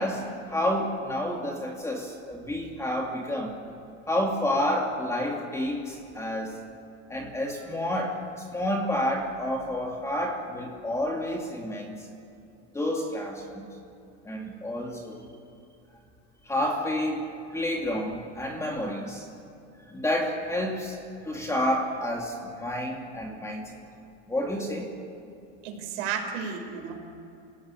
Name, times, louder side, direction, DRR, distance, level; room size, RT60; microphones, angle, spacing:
voice 1, 0.0-3.5 4.1-6.6 7.1-8.3 8.5-12.0 12.7-13.6 14.2-15.2 16.4-19.2 19.9-21.0 21.2-23.7 24.3-24.9, left 1 dB, 10° left, 1 dB, 2.7 m, -29 dB
voice 2, 25.6-26.9, right 7 dB, 65° right, 3 dB, 5.9 m, -32 dB
29.0 x 17.5 x 9.8 m, 2.6 s
supercardioid pair, 155°, 36 cm